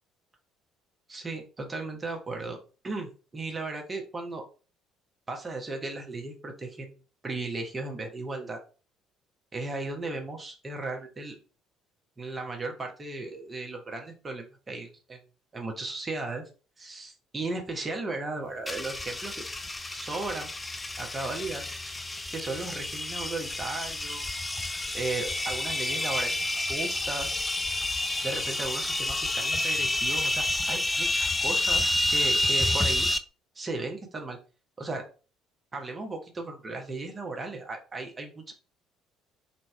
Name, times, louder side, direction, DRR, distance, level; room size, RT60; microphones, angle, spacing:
voice 1, 1.1-2.6 2.8-4.4 5.3-6.9 7.2-8.6 9.5-11.4 12.2-15.2 15.5-16.4 16.8-19.3 19.9-20.5 21.0-21.6 22.3-24.4 24.9-27.4 28.2-33.1 33.5-34.4 34.8-35.0 35.7-38.5, right 3 dB, 25° right, 2 dB, 1.1 m, -36 dB
sound 1, 18.7-33.2, left 1 dB, 15° left, 0.4 m, -29 dB
3.5 x 2.9 x 3.2 m, 0.34 s
figure-of-eight pair, 50°, 0 cm